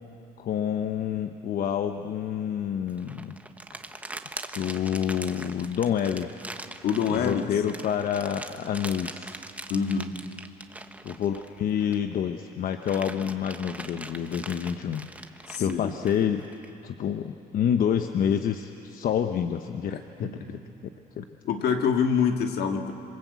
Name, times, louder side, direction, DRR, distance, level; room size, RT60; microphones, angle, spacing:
voice 1, 0.4-3.4 4.5-6.3 7.1-9.4 11.0-15.1 15.5-16.4 16.8-20.3 20.8-20.9 21.2-21.3, left 8 dB, 55° left, 6 dB, 1.0 m, -28 dB
sound 1, 2.9-12.1 12.5-16.7, right 2 dB, 10° right, 1.2 m, -41 dB
voice 2, 6.8-7.4 9.7-10.1 15.5-15.9 20.2-20.6 21.4-22.9, left 6 dB, 70° left, 4 dB, 2.1 m, -26 dB
27.0 x 23.0 x 8.3 m, 2.8 s
cardioid pair, 110°, 17 cm